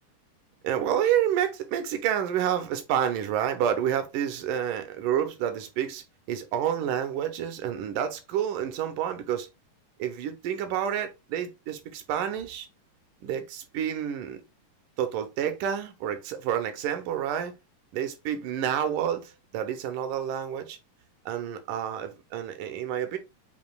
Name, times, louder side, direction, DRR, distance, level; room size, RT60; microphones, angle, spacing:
voice 1, 0.6-9.5 10.0-12.7 13.2-14.4 15.0-17.5 17.9-20.8 21.3-23.2, right 9 dB, 85° right, 2.3 m, -29 dB
7.2 x 2.6 x 2.2 m
omnidirectional pair, 3.6 m